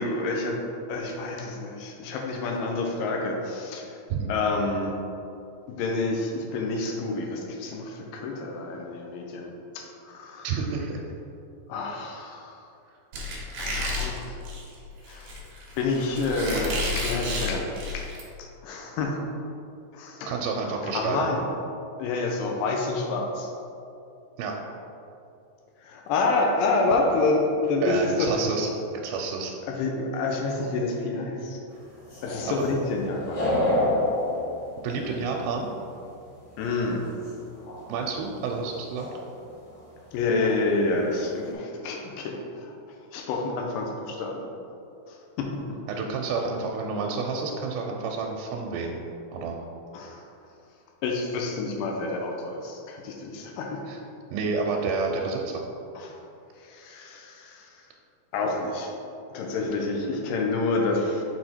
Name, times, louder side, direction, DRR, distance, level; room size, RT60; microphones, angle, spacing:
voice 1, 0.0-3.9 4.3-5.0 5.7-10.5 11.7-12.6 13.6-14.4 15.1-15.4 15.8-17.7 17.9-18.0 18.4-19.2 19.9-20.3 20.8-21.5 22.0-23.5 25.8-28.4 29.7-31.6 32.2-33.4 36.6-37.1 40.1-42.7 43.1-44.4 45.1-45.6 49.9-50.3 51.0-53.8 56.0-56.1 56.6-57.9 58.3-58.9 59.3-61.2, left 3 dB, 80° left, 1 dB, 2.2 m, -28 dB
voice 2, 10.4-11.0 20.3-21.3 24.4-24.6 27.8-28.7 29.0-29.6 32.5-32.7 34.8-35.7 37.9-39.1 45.9-49.0 49.3-49.6 53.9-54.0 54.3-55.6, right 4 dB, 85° right, 1 dB, 2.4 m, -29 dB
Squeak, 13.1-18.2, left 2 dB, 65° right, 1.9 m, -31 dB
sound 1, 32.0-35.5 37.2-37.3 37.6-38.0 38.9-39.2 39.7-39.8 40.2-40.7 41.0-41.5, left 1 dB, 50° left, 2.2 m, -29 dB
6.7 x 4.2 x 4.3 m, 2.6 s
omnidirectional pair, 4.4 m